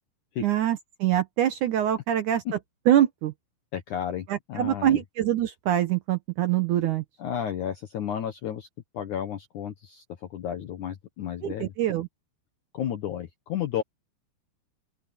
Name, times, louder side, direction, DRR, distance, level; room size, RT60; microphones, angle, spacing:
voice 1, 0.4-2.4 2.9-3.3 4.3-7.0 11.4-12.1, right 11 dB, 80° right, 1.8 m, -24 dB
voice 2, 3.7-5.0 7.2-8.7 8.9-10.0 10.3-11.7 12.7-13.8, left 9 dB, 65° left, 2.0 m, -32 dB
open air
omnidirectional pair, 5.1 m